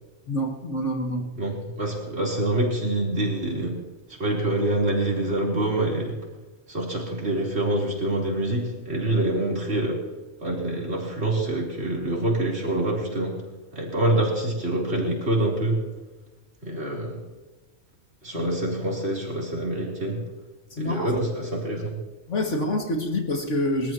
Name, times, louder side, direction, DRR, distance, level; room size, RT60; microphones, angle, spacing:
voice 1, 0.3-1.3 18.3-18.5 20.7-21.2 22.3-23.9, left 1 dB, 80° left, 2 dB, 2.7 m, -27 dB
voice 2, 1.3-3.8 4.1-6.2 6.7-10.0 10.4-13.4 13.7-15.8 16.6-17.2 18.2-20.2 20.8-22.0, right 1 dB, 60° right, -3 dB, 4.2 m, -26 dB
27.5 x 13.5 x 3.1 m, 1.2 s
omnidirectional pair, 1.2 m